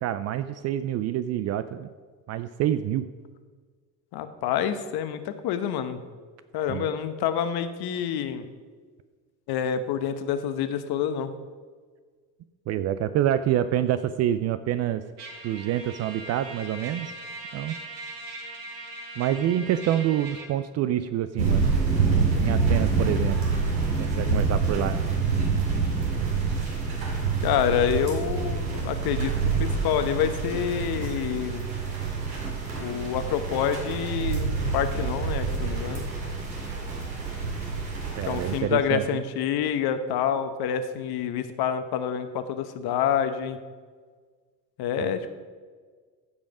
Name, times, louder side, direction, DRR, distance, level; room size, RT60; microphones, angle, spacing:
voice 1, 0.0-1.9 2.3-3.1 6.7-6.9 12.7-15.0 15.4-17.1 17.5-17.8 19.2-21.8 22.4-23.4 24.0-25.1 38.2-39.0 45.0-45.1, right 11 dB, 35° right, 12 dB, 0.4 m, -27 dB
voice 2, 4.1-6.0 6.5-8.4 9.5-11.3 27.4-31.6 32.8-36.1 38.3-43.6 44.8-45.3, left 8 dB, 50° left, 10 dB, 1.1 m, -27 dB
Trumpet, 15.2-20.5, right 2 dB, 70° right, 2.4 m, -40 dB
sound 1, 21.4-38.6, right 4 dB, 85° right, 2.3 m, -27 dB
15.0 x 5.2 x 4.9 m, 1.5 s
hypercardioid pair, 70°, 50 cm